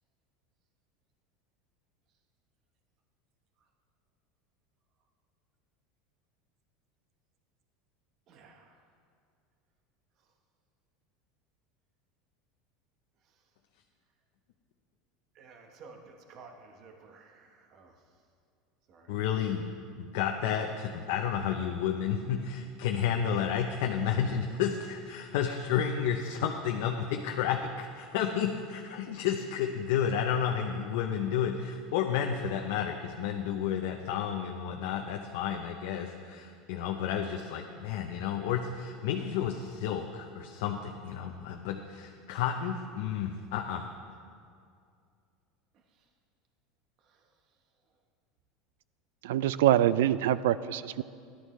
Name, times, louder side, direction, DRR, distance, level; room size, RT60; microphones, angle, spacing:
voice 1, 8.3-8.8 15.3-18.0 18.9-19.1 47.0-47.3, right 4 dB, 45° right, 3 dB, 1.0 m, -53 dB
voice 2, 19.1-43.9, left 8 dB, 75° left, 3 dB, 0.6 m, -31 dB
voice 3, 49.2-51.0, right 12 dB, 90° right, 17 dB, 0.3 m, -25 dB
14.0 x 11.0 x 3.2 m, 2.3 s
supercardioid pair, 145°, 0 cm